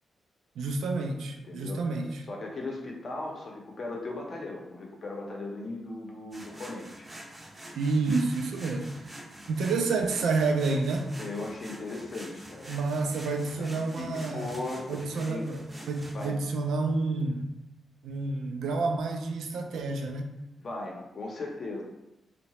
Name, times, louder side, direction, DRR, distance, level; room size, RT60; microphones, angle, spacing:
voice 1, 0.6-2.2 7.8-9.0 9.5-11.1 12.7-14.5 14.9-17.5 18.0-20.3, right 3 dB, 90° right, 3 dB, 0.3 m, -29 dB
voice 2, 1.4-1.8 2.3-7.1 11.2-12.8 13.6-15.5 16.1-16.4 20.6-21.8, left 2 dB, 50° left, -1 dB, 0.6 m, -38 dB
sound 1, 6.3-16.3, right 1 dB, 30° right, 0.5 m, -46 dB
2.8 x 2.1 x 2.9 m, 0.92 s
cardioid pair, 85°, 0 cm